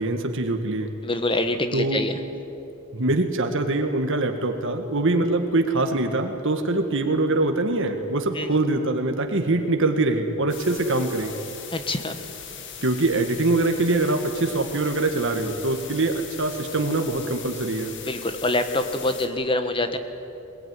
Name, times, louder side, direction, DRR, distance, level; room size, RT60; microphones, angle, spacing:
voice 1, 0.0-0.9 1.7-2.1 2.9-11.3 12.8-17.9, right 2 dB, 60° right, 5 dB, 1.7 m, -23 dB
voice 2, 1.0-2.2 8.4-8.5 11.7-12.2 18.1-20.0, left 2 dB, 25° left, 8 dB, 1.5 m, -25 dB
sound 1, 10.5-19.3, left 7 dB, 55° left, 2.1 m, -39 dB
21.5 x 21.5 x 9.8 m, 3.0 s
head